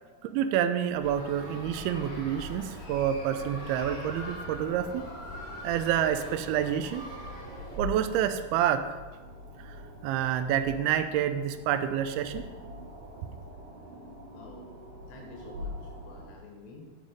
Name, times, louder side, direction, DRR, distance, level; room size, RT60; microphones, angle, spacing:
voice 1, 0.2-5.0 5.6-7.0 7.8-9.0 10.0-12.4, right 10 dB, 85° right, 10 dB, 2.3 m, -28 dB
sound 1, 0.9-16.3, left 1 dB, 65° right, 4.1 m, -44 dB
sound 2, 1.0-7.8, left 1 dB, 55° left, 3.5 m, -43 dB
voice 2, 14.3-14.8 15.1-16.9, left 3 dB, 80° left, 0 dB, 3.5 m, -50 dB
8.8 x 7.4 x 5.2 m, 1.3 s
omnidirectional pair, 5.0 m